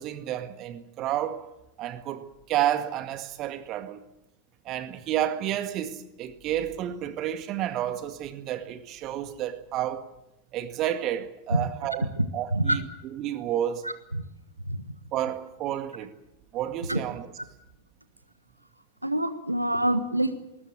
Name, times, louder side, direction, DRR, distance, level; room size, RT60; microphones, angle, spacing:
voice 1, 0.0-1.5 1.8-4.0 4.7-10.1 10.5-13.9 15.1-16.2 16.5-17.3, right 11 dB, 35° right, 1.8 m, -31 dB
voice 2, 12.5-12.8 13.8-14.2 14.7-14.8 16.9-17.0 19.0-20.3, right 1 dB, 85° right, 1.4 m, -26 dB
21.0 x 19.5 x 9.0 m
figure-of-eight pair, 90°, 0 cm